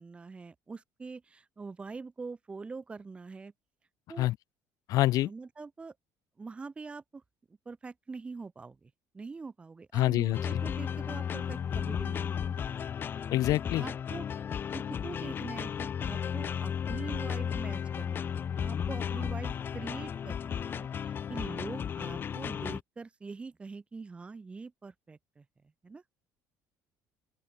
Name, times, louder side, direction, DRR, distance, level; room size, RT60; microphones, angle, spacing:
voice 1, 0.0-3.5 4.1-4.3 5.2-5.9 6.4-7.2 7.7-12.7 13.7-25.5 25.8-26.0, right 4 dB, 15° right, 7.2 m, -44 dB
voice 2, 4.9-5.3 9.9-10.6 13.3-13.8, left 16 dB, 55° left, 1.3 m, -26 dB
sound 1, 10.3-22.8, left 8 dB, 30° left, 2.1 m, -34 dB
open air
cardioid pair, 175°, 7 cm